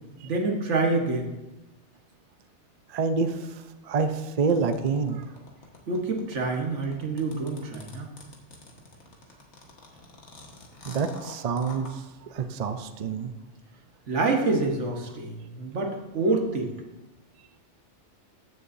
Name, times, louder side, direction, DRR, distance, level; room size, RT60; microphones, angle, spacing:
voice 1, 0.2-1.3 5.9-8.1 14.1-16.7, right 3 dB, 80° right, 2 dB, 1.6 m, -27 dB
voice 2, 2.9-3.3 3.9-5.2 10.9-11.9 12.3-13.3, right 5 dB, 45° right, 8 dB, 0.5 m, -26 dB
sound 1, 4.5-11.9, left 3 dB, 70° left, 1.6 m, -47 dB
14.5 x 6.9 x 2.6 m, 1.0 s
omnidirectional pair, 1.2 m